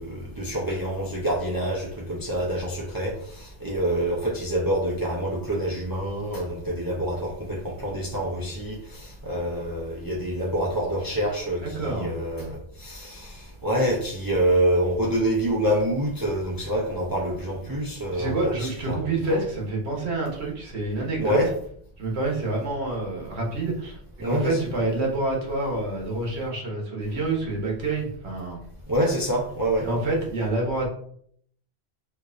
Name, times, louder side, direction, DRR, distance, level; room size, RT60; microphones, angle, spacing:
voice 1, 0.0-19.0 19.3-19.4 21.2-21.5 24.2-24.7 28.9-29.9, right 1 dB, 30° right, -2 dB, 0.4 m, -26 dB
voice 2, 11.6-12.1 18.1-21.4 22.0-28.6 29.8-30.9, right 2 dB, 80° right, -1 dB, 1.3 m, -27 dB
4.6 x 2.4 x 2.4 m, 0.64 s
omnidirectional pair, 1.1 m